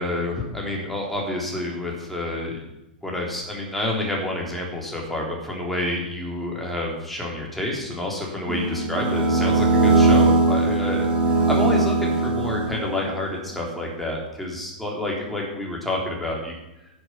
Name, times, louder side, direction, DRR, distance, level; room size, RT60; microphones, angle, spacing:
voice 1, 0.0-2.6 3.0-16.5, left 1 dB, 5° left, -2 dB, 3.4 m, -28 dB
sound 1, 8.5-13.1, right 3 dB, 25° right, 2.0 m, -20 dB
10.5 x 7.9 x 6.1 m, 0.93 s
figure-of-eight pair, 105°, 5 cm